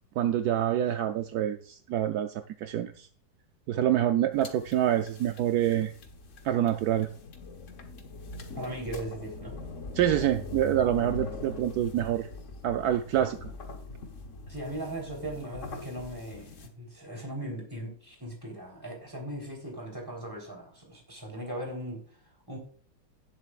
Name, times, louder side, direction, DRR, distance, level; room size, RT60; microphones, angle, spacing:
voice 1, 0.2-2.3 2.6-3.1 3.7-5.9 6.4-7.1 10.0-12.3 12.6-13.5, right 11 dB, 75° right, 7 dB, 0.9 m, -26 dB
sound 1, 4.3-16.7, left 3 dB, 45° left, 1.3 m, -42 dB
voice 2, 8.5-9.6 11.2-11.3 14.5-22.6, right 1 dB, 10° right, -1 dB, 3.6 m, -39 dB
17.5 x 7.7 x 2.4 m, 0.43 s
omnidirectional pair, 2.2 m